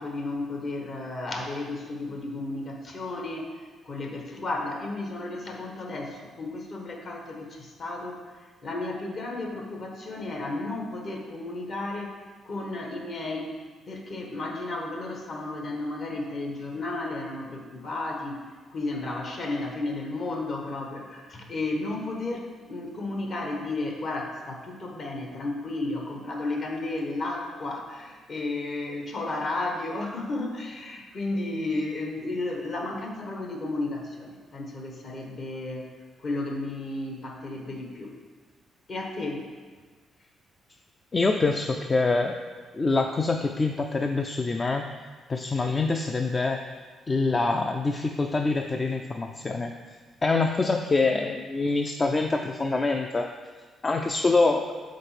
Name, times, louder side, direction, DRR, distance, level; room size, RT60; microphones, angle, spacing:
voice 1, 0.0-8.2 8.6-12.2 12.4-13.5 13.9-35.9 36.2-38.1 38.9-39.5, left 2 dB, 50° left, 1 dB, 1.2 m, -33 dB
voice 2, 41.1-42.4 42.7-44.9 45.3-46.8 47.1-49.7 50.2-53.3 53.8-54.7, left 3 dB, 30° left, 4 dB, 0.3 m, -25 dB
5.2 x 4.1 x 5.8 m, 1.4 s
cardioid pair, 90°, 0 cm